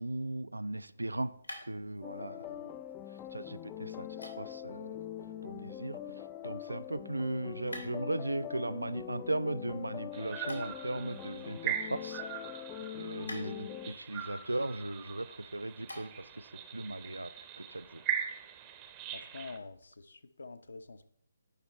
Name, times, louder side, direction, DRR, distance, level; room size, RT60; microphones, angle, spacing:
voice 1, 0.0-1.3 1.7-2.7 3.1-5.0 5.4-12.2 12.9-18.0, right 2 dB, 75° right, 16 dB, 0.4 m, -37 dB
sound 1, 0.8-16.4, left 1 dB, 85° left, 2.3 m, -54 dB
sound 2, 2.0-13.9, left 11 dB, 15° left, 0.3 m, -43 dB
sound 3, 10.1-19.6, right 9 dB, 20° right, 0.7 m, -41 dB
voice 2, 19.1-21.0, left 3 dB, 65° left, 11 dB, 0.7 m, -47 dB
11.0 x 4.4 x 4.1 m, 0.65 s
figure-of-eight pair, 140°, 0 cm